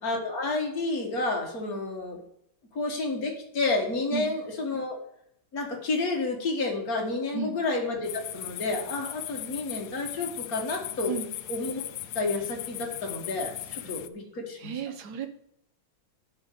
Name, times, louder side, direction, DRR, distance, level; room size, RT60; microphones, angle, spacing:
voice 1, 0.0-2.2 2.7-5.0 5.5-11.2 11.5-11.8 12.2-14.7, left 3 dB, 55° left, 1 dB, 2.3 m, -30 dB
sound 1, 8.0-14.1, left 13 dB, 75° left, 1.1 m, -38 dB
voice 2, 14.6-15.3, right 6 dB, 65° right, 8 dB, 1.6 m, -33 dB
10.0 x 5.4 x 6.7 m, 0.72 s
omnidirectional pair, 1.9 m